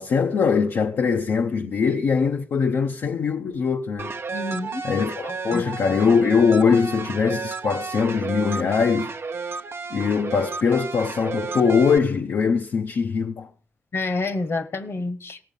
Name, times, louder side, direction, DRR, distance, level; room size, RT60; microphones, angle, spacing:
voice 1, 0.0-4.1 4.8-9.1 9.9-13.5, left 5 dB, 85° left, 0.6 m, -22 dB
sound 1, 4.0-12.0, right 4 dB, 65° right, 0.7 m, -32 dB
voice 2, 4.3-4.8 5.5-5.6 13.9-15.4, left 2 dB, 70° left, 1.1 m, -28 dB
17.0 x 7.2 x 5.3 m
cardioid pair, 45°, 4 cm